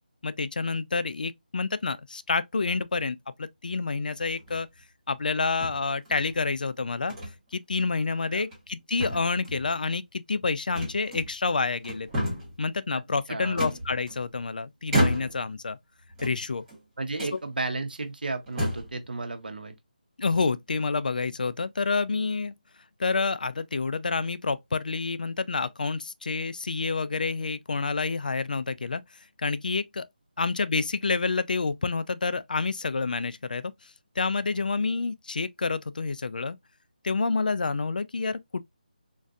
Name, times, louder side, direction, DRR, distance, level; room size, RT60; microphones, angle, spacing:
voice 1, 0.2-4.7 5.1-7.1 7.5-12.1 12.6-15.8 16.2-16.6 17.3-17.4 20.2-22.5 23.0-29.0 29.4-30.1 30.4-33.9 34.2-36.6 37.0-38.6, left 4 dB, 65° left, 0.4 m, -28 dB
sound 1, 4.4-4.8 5.6-6.4 7.1-7.3 7.7-7.9 8.4-8.7 9.0-9.7 10.7-11.5 11.8-12.6 13.6-14.4 14.9-15.5 16.1-16.8 17.2-17.4 18.0-18.1 18.5-19.0, equal, 10° right, 1.0 m, -31 dB
voice 2, 17.0-19.8, right 3 dB, 75° right, 0.9 m, -33 dB
3.8 x 2.5 x 2.3 m
figure-of-eight pair, 170°, 5 cm